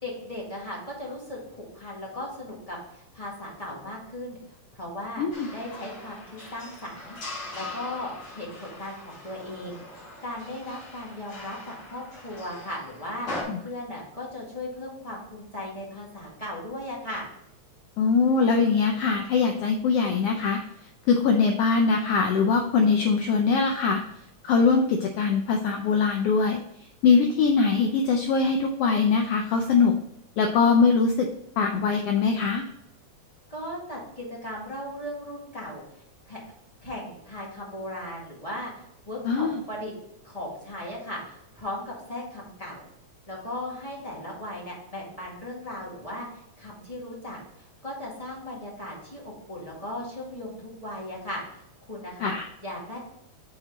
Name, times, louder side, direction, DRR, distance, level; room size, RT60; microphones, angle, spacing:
voice 1, 0.0-4.4 4.7-7.2 7.5-8.1 8.3-9.8 10.2-13.3 13.6-17.2 33.5-35.8 36.2-36.4 36.8-38.7 39.0-39.9 40.2-42.8 43.3-51.4 51.8-52.3 52.6-53.0, left 1 dB, 15° left, -5 dB, 1.4 m, -37 dB
voice 2, 5.2-5.5 13.5-13.6 18.0-20.6 21.1-24.0 24.4-26.6 27.0-29.9 30.4-31.3 31.6-32.6 39.2-39.6 52.2-52.5, left 5 dB, 80° left, 4 dB, 1.4 m, -22 dB
sound 1, 5.3-13.4, left 2 dB, 50° left, 2.4 m, -41 dB
6.1 x 3.9 x 5.0 m, 0.80 s
omnidirectional pair, 3.3 m